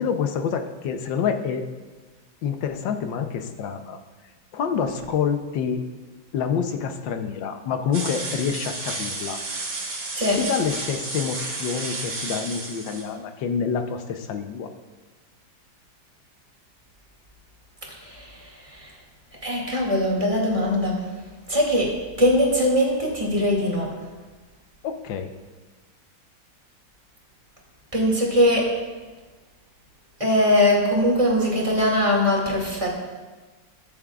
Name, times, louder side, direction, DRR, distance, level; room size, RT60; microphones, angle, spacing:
voice 1, 0.0-1.6 2.4-4.0 4.5-5.8 6.3-9.4 10.4-14.7 24.8-25.3, left 7 dB, 80° left, 6 dB, 1.5 m, -27 dB
sound 1, 7.9-13.0, right 3 dB, 75° right, 2.4 m, -32 dB
voice 2, 19.4-21.0 21.5-21.9 22.2-23.9 27.9-28.7 30.2-32.9, left 1 dB, 15° right, -3 dB, 2.2 m, -21 dB
21.5 x 7.2 x 2.4 m, 1.3 s
omnidirectional pair, 2.0 m